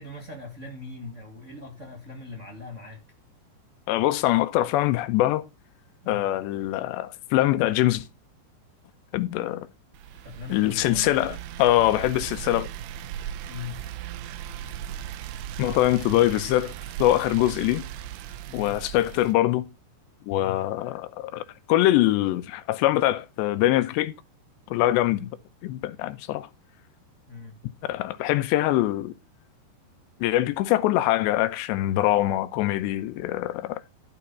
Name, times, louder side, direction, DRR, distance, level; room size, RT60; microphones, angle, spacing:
voice 1, 0.0-3.0 6.0-6.3 10.2-11.1 13.5-13.9 18.4-18.8 20.3-20.7 25.1-25.3 27.3-27.6, left 3 dB, 30° right, 1.5 m, -40 dB
voice 2, 3.9-5.4 6.1-8.0 9.1-9.7 10.5-11.3 11.6-12.7 15.6-16.7 17.0-17.8 18.5-19.7 20.3-24.1 24.7-25.3 25.6-26.5 27.9-29.1 30.2-33.8, left 15 dB, 90° left, 3.1 m, -23 dB
sound 1, 9.9-19.3, right 10 dB, 75° right, 2.6 m, -37 dB
12.5 x 7.1 x 4.7 m
omnidirectional pair, 4.9 m